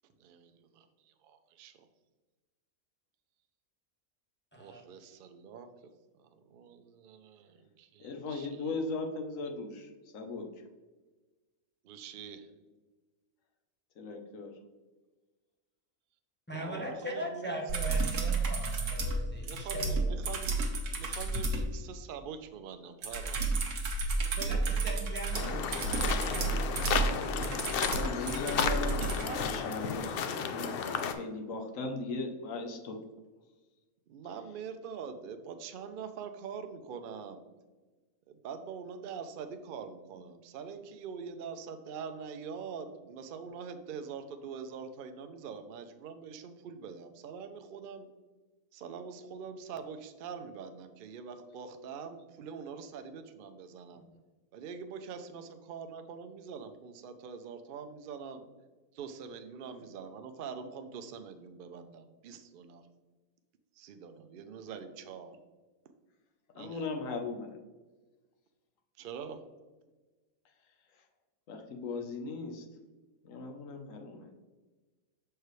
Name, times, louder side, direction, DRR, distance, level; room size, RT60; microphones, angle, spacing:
voice 1, 0.2-1.9 4.6-5.7 6.2-8.8 11.8-12.5 16.5-17.5 19.4-23.4 28.9-29.4 34.1-37.4 38.3-48.1 48.7-54.0 54.5-58.5 58.9-62.8 63.8-65.4 66.5-66.9 69.0-69.4, right 6 dB, 80° right, 8 dB, 0.4 m, -44 dB
voice 2, 4.5-4.8 16.5-20.0 24.4-27.1, equal, 10° left, -1 dB, 0.7 m, -40 dB
voice 3, 8.0-9.9 10.1-10.5 14.0-14.5 27.9-29.0 29.4-30.1 30.4-30.7 31.0-33.0 66.6-67.6 71.5-72.7 73.2-74.3, left 3 dB, 65° left, 3 dB, 1.1 m, -38 dB
sound 1, 17.7-21.7 23.0-29.3 31.0-31.1, right 3 dB, 60° right, 1.2 m, -31 dB
sound 2, 25.3-31.1, left 6 dB, 85° left, 0.5 m, -33 dB
6.6 x 4.7 x 3.1 m, 1.2 s
omnidirectional pair, 1.5 m